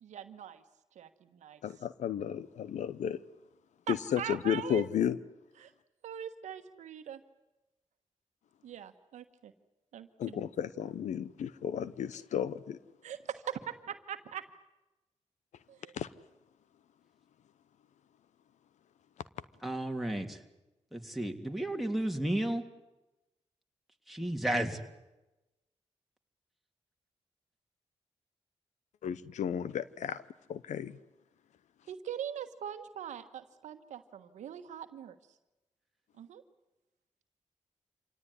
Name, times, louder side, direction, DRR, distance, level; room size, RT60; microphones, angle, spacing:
voice 1, 0.0-0.6 0.9-1.6 3.9-4.8 5.6-5.7 6.0-7.2 8.6-9.5 9.9-10.4 13.0-14.4 15.7-15.9 31.9-35.1 36.2-36.4, right 9 dB, 90° right, 9 dB, 1.3 m, -42 dB
voice 2, 1.6-3.2 3.9-5.2 10.2-12.8 15.9-16.1 29.0-30.2 30.5-31.0, left 9 dB, 85° left, 17 dB, 0.8 m, -33 dB
voice 3, 19.6-20.4 20.9-22.6 24.1-24.8, right 1 dB, ahead, 3 dB, 3.1 m, -32 dB
26.0 x 18.0 x 9.8 m, 1.0 s
supercardioid pair, 50°, 12 cm